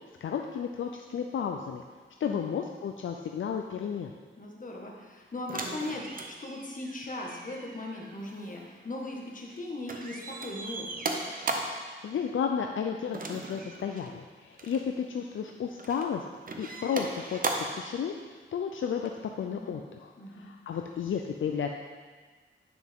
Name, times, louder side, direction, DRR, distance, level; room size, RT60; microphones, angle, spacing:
voice 1, 0.2-1.8 2.2-4.1 12.0-16.2 16.6-19.8 20.3-21.7, left 7 dB, 70° left, 3 dB, 0.5 m, -33 dB
voice 2, 2.2-2.6 4.4-11.1 19.3-19.8 20.2-20.5, left 2 dB, 40° left, -1 dB, 1.5 m, -39 dB
sound 1, 5.5-9.6 9.9-11.9 13.1-14.1 14.5-14.8 15.5-16.1 16.5-17.9 19.0-19.1, right 2 dB, 45° right, 0.8 m, -37 dB
9.6 x 5.9 x 3.6 m, 1.5 s
cardioid pair, 85°, 21 cm